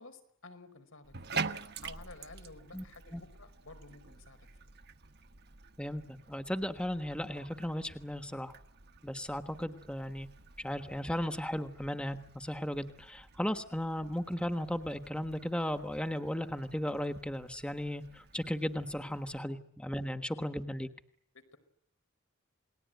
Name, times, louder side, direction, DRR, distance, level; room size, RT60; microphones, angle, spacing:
voice 1, 0.0-1.5 1.8-4.5 19.5-19.6 20.1-20.4 21.3-21.6, left 3 dB, 90° left, 9 dB, 5.2 m, -52 dB
Bathtub (filling or washing), 1.0-19.4, right 5 dB, 50° right, 1.3 m, -47 dB
voice 2, 5.8-8.5 9.0-10.3 10.6-20.9, equal, 5° left, 8 dB, 1.3 m, -36 dB
28.5 x 20.5 x 9.3 m, 0.68 s
head